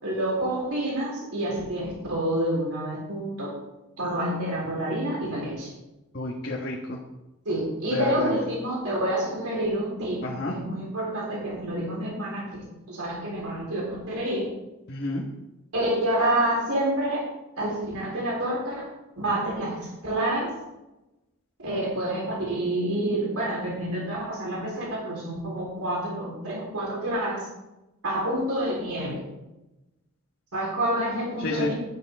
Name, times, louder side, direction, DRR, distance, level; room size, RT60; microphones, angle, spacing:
voice 1, 0.0-3.5 4.0-5.7 7.5-12.5 12.9-14.5 15.7-17.3 17.6-18.9 19.2-20.5 21.6-27.5 28.0-29.2 30.5-31.7, right 1 dB, 80° right, -4 dB, 3.9 m, -28 dB
voice 2, 6.1-7.0 7.9-8.3 10.2-10.6 14.9-15.2 31.4-31.7, left 2 dB, 45° left, -2 dB, 1.4 m, -29 dB
12.0 x 10.5 x 3.6 m, 0.99 s
head